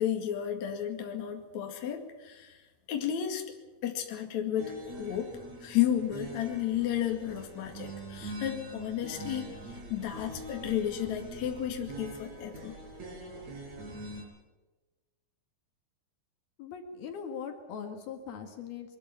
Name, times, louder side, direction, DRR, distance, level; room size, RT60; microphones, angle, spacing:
voice 1, 0.0-2.6 2.9-3.4 3.8-5.3 5.6-12.8, left 10 dB, 50° left, 3 dB, 3.1 m, -32 dB
sound 1, 4.6-14.2, right 1 dB, 45° right, 6.0 m, -43 dB
voice 2, 16.6-19.0, left 6 dB, 70° left, 5 dB, 3.7 m, -40 dB
23.0 x 13.5 x 10.0 m, 1.2 s
omnidirectional pair, 4.6 m